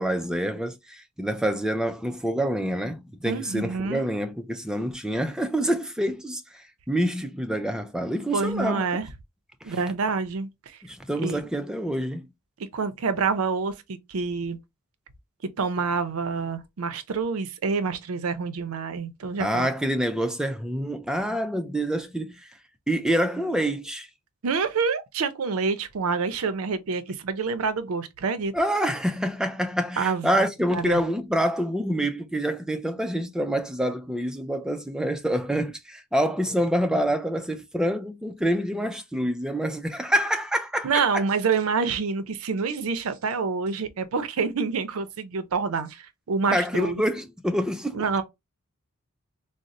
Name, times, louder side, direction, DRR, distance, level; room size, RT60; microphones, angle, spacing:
voice 1, 0.0-8.9 9.6-9.8 10.8-12.3 19.4-22.5 22.9-24.1 28.5-41.2 46.5-48.0, equal, 5° right, 0.3 m, -27 dB
voice 2, 3.3-4.1 8.3-9.1 9.6-10.8 11.2-11.4 12.7-14.6 15.6-19.7 24.4-28.5 30.0-30.3 30.7-31.0 40.8-46.9 47.9-48.2, right 5 dB, 75° right, 0.5 m, -27 dB
4.0 x 2.0 x 2.5 m
head